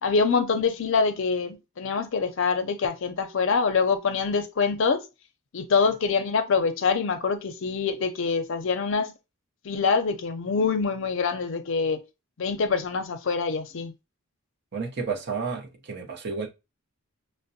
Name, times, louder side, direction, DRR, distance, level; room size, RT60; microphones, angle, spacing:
voice 1, 0.0-5.0 5.5-9.1 9.6-12.0 12.4-13.9, left 5 dB, 60° left, 0.5 m, -25 dB
voice 2, 14.7-16.5, right 5 dB, 50° right, 0.7 m, -31 dB
5.7 x 2.0 x 2.6 m
head